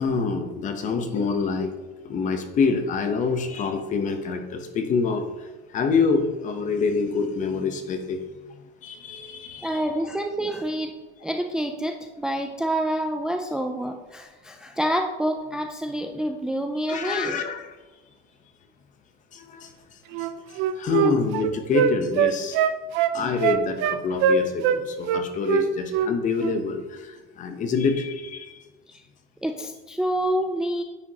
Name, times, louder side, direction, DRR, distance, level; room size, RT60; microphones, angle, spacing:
voice 1, 0.0-1.7 2.0-8.6 8.8-9.8 16.9-17.7 19.3-19.7 20.2-20.3 20.7-22.6 23.1-28.6, left 4 dB, 40° left, 7 dB, 0.8 m, -26 dB
voice 2, 9.6-10.9 11.2-17.4 23.2-23.3 28.9-29.0 29.4-30.8, right 1 dB, 5° right, 4 dB, 0.3 m, -27 dB
Wind instrument woodwind instrument, 20.1-24.8 25.1-26.1 26.4-26.6, right 8 dB, 75° right, 0.5 m, -22 dB
9.4 x 5.0 x 2.9 m, 1.2 s
cardioid pair, 145°, 20 cm